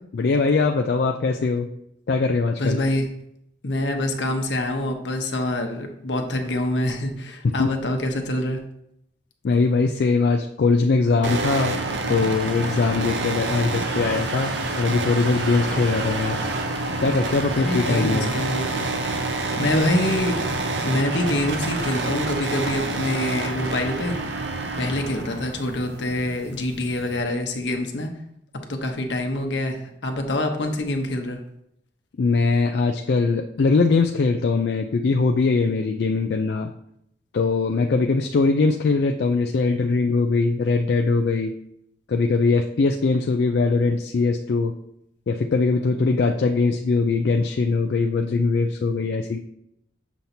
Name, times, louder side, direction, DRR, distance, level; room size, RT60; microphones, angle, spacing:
voice 1, 0.1-1.7 2.1-2.8 7.4-7.7 9.4-11.8 12.1-16.4 17.0-18.3 19.1-19.2 32.2-36.7 37.3-41.5 42.1-44.7 45.3-49.4, left 4 dB, 65° left, 4 dB, 0.4 m, -21 dB
voice 2, 2.6-3.1 3.6-8.6 17.6-18.9 19.6-20.4 20.8-24.2 24.8-28.1 28.7-31.4, left 1 dB, 80° left, 4 dB, 0.9 m, -25 dB
sound 1, 11.2-27.2, right 2 dB, 80° right, 0.7 m, -28 dB
7.1 x 2.7 x 5.8 m, 0.76 s
head